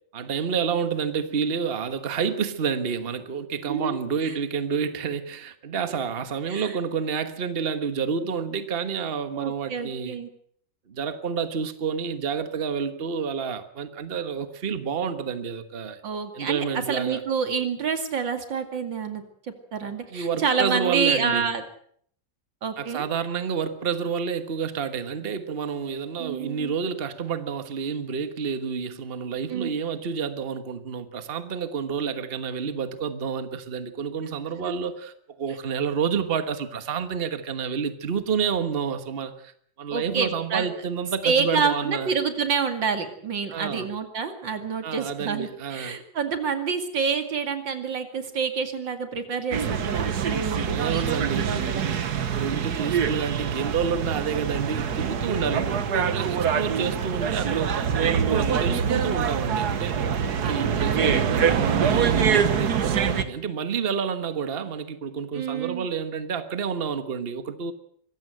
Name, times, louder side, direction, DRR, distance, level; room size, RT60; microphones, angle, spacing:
voice 1, 0.1-10.2 10.9-16.0 16.3-17.2 20.1-21.5 22.8-39.5 39.8-42.1 43.5-43.9 44.8-46.0 50.6-51.7 52.2-67.7, right 6 dB, 35° right, 1.4 m, -29 dB
voice 2, 3.6-4.3 6.5-6.7 9.4-10.3 16.0-16.6 16.9-19.2 19.7-21.6 22.6-23.0 26.2-26.7 29.5-29.7 39.9-40.7 41.2-52.0 55.3-55.5 60.4-61.4 65.3-65.9, right 6 dB, 85° right, 3.0 m, -28 dB
sound 1, 49.5-63.2, right 7 dB, 60° right, 1.7 m, -25 dB
24.0 x 15.0 x 7.8 m
omnidirectional pair, 2.0 m